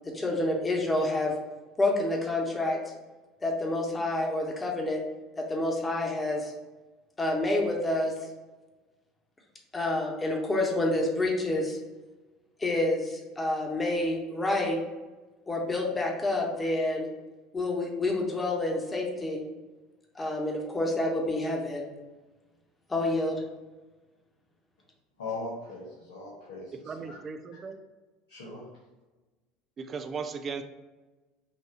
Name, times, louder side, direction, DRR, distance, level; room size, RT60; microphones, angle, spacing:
voice 1, 0.1-1.3 1.8-2.8 3.4-5.0 5.3-6.5 7.2-8.1 9.7-11.8 12.6-14.8 15.5-17.1 17.5-19.4 20.1-21.8 22.9-23.4, left 2 dB, 20° left, 0 dB, 1.3 m, -28 dB
voice 2, 25.2-27.2 28.3-28.6, left 3 dB, 85° left, -7 dB, 1.3 m, -39 dB
voice 3, 26.7-27.8 29.8-30.6, right 5 dB, 35° right, 8 dB, 0.5 m, -37 dB
5.6 x 2.6 x 3.0 m, 1.2 s
hypercardioid pair, 75°, 0 cm